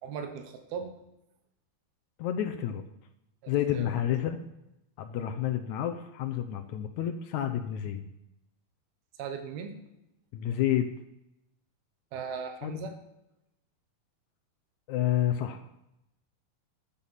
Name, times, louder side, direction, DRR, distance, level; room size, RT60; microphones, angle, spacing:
voice 1, 0.0-0.9 3.4-4.0 9.2-9.8 12.1-12.9, right 6 dB, 85° right, 6 dB, 3.2 m, -38 dB
voice 2, 2.2-2.8 3.5-4.4 5.0-8.1 10.3-10.9 12.6-12.8 14.9-15.6, left 11 dB, 75° left, 7 dB, 1.7 m, -29 dB
12.5 x 9.6 x 5.7 m, 0.84 s
omnidirectional pair, 4.3 m